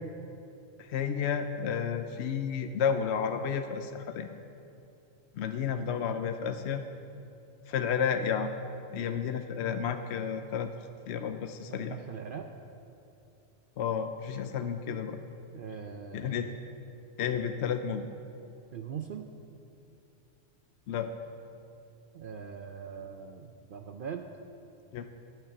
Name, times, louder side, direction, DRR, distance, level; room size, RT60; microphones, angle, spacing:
voice 1, 0.8-4.3 5.3-6.8 7.7-8.5 8.9-10.7 11.1-12.0 13.8-15.2 16.1-16.5 17.2-18.1 20.9-21.1 24.9-25.1, left 7 dB, 65° left, 8 dB, 0.8 m, -31 dB
voice 2, 11.7-12.5 15.5-16.5 18.7-19.3 22.1-24.2, right 7 dB, 60° right, 5 dB, 0.6 m, -41 dB
10.0 x 9.1 x 6.9 m, 2.7 s
omnidirectional pair, 1.3 m